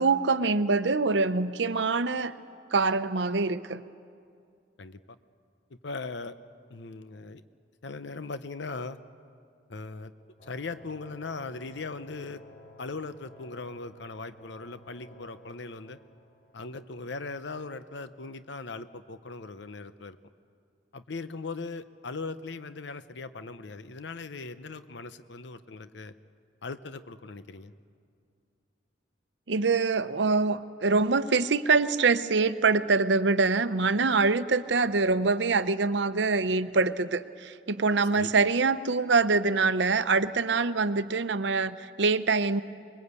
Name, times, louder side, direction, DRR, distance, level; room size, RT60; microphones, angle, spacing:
voice 1, 0.0-2.3 2.7-3.8 29.5-42.6, right 4 dB, 75° right, 12 dB, 0.8 m, -24 dB
voice 2, 4.8-5.2 5.7-6.4 6.7-7.4 7.8-9.0 9.7-10.1 10.4-12.4 12.8-16.0 16.5-20.2 20.9-26.1 26.6-27.7 38.1-38.3, left 3 dB, 75° left, 12 dB, 0.8 m, -39 dB
sound 1, 10.4-17.6, left 1 dB, 40° left, 4.6 m, -55 dB
24.0 x 22.0 x 8.3 m, 2.3 s
head